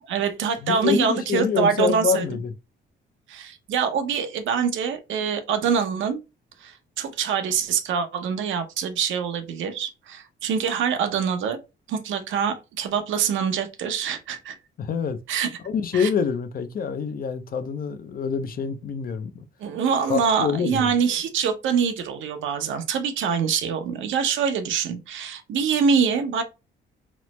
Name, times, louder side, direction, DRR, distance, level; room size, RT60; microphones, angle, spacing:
voice 1, 0.1-2.3 3.3-6.2 6.6-11.6 11.9-14.6 15.3-15.5 15.9-16.1 19.6-26.4, right 6 dB, 75° right, 0.6 m, -25 dB
voice 2, 0.6-2.5 14.8-15.2 15.6-19.5 20.1-20.9, left 6 dB, 45° left, 0.4 m, -26 dB
3.0 x 2.0 x 3.0 m
cardioid pair, 90°, 20 cm